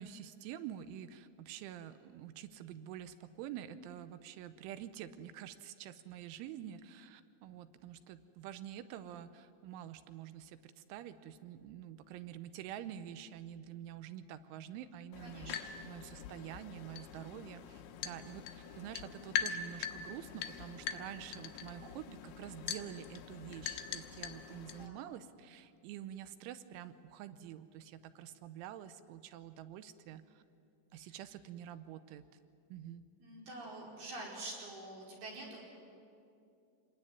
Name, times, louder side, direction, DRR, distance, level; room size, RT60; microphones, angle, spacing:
voice 1, 0.0-30.4 30.9-32.2 32.7-33.0, right 10 dB, 90° right, 12 dB, 3.3 m, -47 dB
sound 1, 15.1-24.9, left 8 dB, 75° left, 3.1 m, -43 dB
voice 2, 15.2-15.7 24.8-25.0 30.9-31.2 33.2-35.6, right 2 dB, 55° right, -3 dB, 6.6 m, -47 dB
27.0 x 20.5 x 9.8 m, 2.5 s
omnidirectional pair, 5.4 m